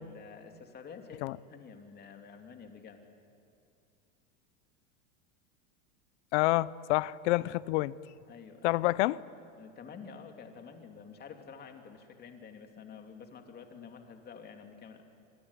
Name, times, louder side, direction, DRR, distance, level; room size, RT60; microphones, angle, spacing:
voice 1, 0.0-3.0 8.3-8.8 9.5-15.0, left 6 dB, 25° left, 5 dB, 2.9 m, -49 dB
voice 2, 6.3-7.9 8.6-9.2, left 19 dB, 65° left, 20 dB, 0.8 m, -28 dB
26.5 x 21.5 x 9.9 m, 2.5 s
supercardioid pair, 140°, 37 cm